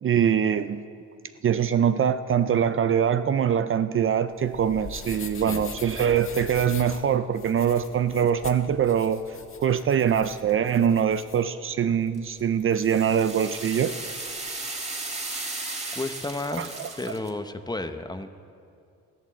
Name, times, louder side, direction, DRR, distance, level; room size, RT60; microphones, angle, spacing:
voice 1, 0.0-0.8 1.4-9.2 9.6-13.9 16.6-16.9, right 8 dB, 45° right, 12 dB, 0.5 m, -23 dB
sound 1, 4.3-11.4, left 4 dB, 45° left, 1.5 m, -41 dB
sound 2, 12.1-17.3, right 2 dB, 20° right, 2.0 m, -35 dB
voice 2, 15.9-18.3, left 2 dB, 15° left, 9 dB, 0.9 m, -32 dB
13.5 x 12.0 x 7.4 m, 2.5 s
cardioid pair, 90°, 30 cm